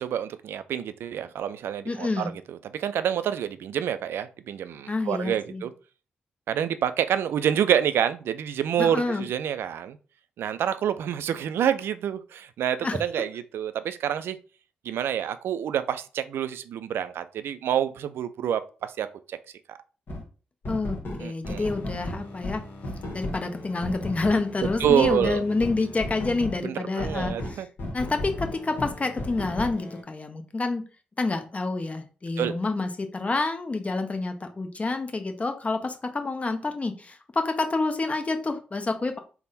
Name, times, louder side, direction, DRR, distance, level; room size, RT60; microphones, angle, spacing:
voice 1, 0.0-5.7 6.5-10.0 10.4-14.4 14.8-19.4 19.7-19.8 21.2-21.7 24.8-25.4 26.6-27.7 32.4-32.5, right 9 dB, 65° right, 12 dB, 0.3 m, -27 dB
voice 2, 1.9-2.3 4.9-5.6 8.8-9.2 12.8-13.0 20.7-22.6 23.1-27.6 27.9-30.8 31.2-39.2, left 3 dB, 30° left, 6 dB, 0.7 m, -28 dB
sound 1, 20.1-20.2 20.6-26.6 27.0-30.0, left 1 dB, 55° left, 1.1 m, -35 dB
3.5 x 2.1 x 4.0 m, 0.36 s
hypercardioid pair, 40°, 4 cm